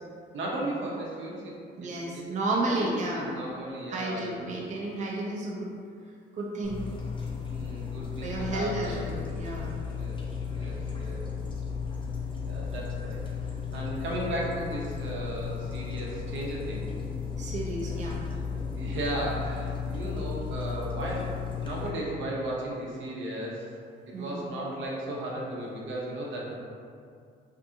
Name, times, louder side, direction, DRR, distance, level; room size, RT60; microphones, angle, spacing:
voice 1, 0.3-1.6 2.1-4.5 7.4-9.0 9.9-10.2 10.5-11.3 12.4-13.2 13.7-17.1 18.8-23.7 24.1-26.6, right 1 dB, 75° right, -3 dB, 0.7 m, -35 dB
voice 2, 1.8-3.3 3.9-5.7 6.4-6.8 8.2-9.8 17.4-18.2 24.1-24.5, right 2 dB, 40° right, -3 dB, 0.5 m, -32 dB
sound 1, 6.6-21.9, left 6 dB, 25° left, 0.5 m, -34 dB
2.6 x 2.5 x 2.6 m, 2.3 s
cardioid pair, 90°, 20 cm